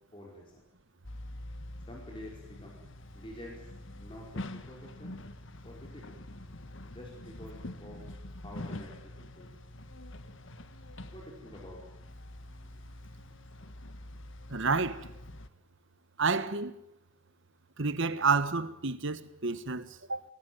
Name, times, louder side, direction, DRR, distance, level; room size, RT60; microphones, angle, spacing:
voice 1, 0.1-0.7 1.9-2.8 3.1-3.7 4.0-5.2 5.6-6.0 6.8-8.0 8.4-9.5 11.1-11.8, left 1 dB, 25° left, 4.9 m, -48 dB
sound 1, 1.0-15.5, left 1 dB, 60° left, 1.6 m, -45 dB
voice 2, 14.5-15.0 16.2-16.7 17.8-20.2, right 4 dB, 60° right, 1.5 m, -29 dB
24.5 x 19.0 x 9.4 m
head